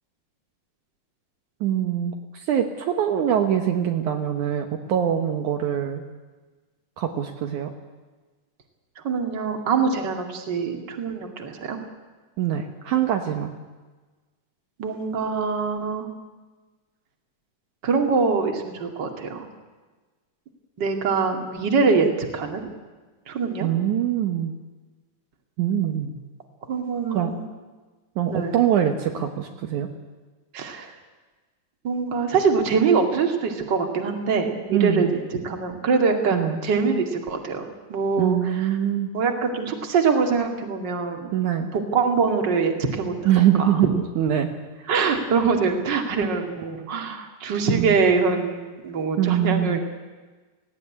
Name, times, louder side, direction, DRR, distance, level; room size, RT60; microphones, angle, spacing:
voice 1, 1.6-6.0 7.0-7.7 12.4-13.5 23.6-24.5 25.6-26.1 27.1-27.3 28.2-29.9 34.7-35.1 36.3-36.6 38.2-39.1 41.3-41.7 43.3-44.5 47.7-48.0 49.2-49.8, right 10 dB, 70° right, 5 dB, 2.4 m, -23 dB
voice 2, 9.0-11.8 14.8-16.1 17.8-19.5 20.8-22.7 23.3-23.7 26.7-27.4 28.3-28.6 30.5-30.9 31.8-35.1 35.4-38.7 39.1-41.3 41.7-43.8 44.9-49.8, right 5 dB, 35° right, 3 dB, 2.6 m, -24 dB
18.5 x 17.5 x 9.8 m, 1.3 s
omnidirectional pair, 3.8 m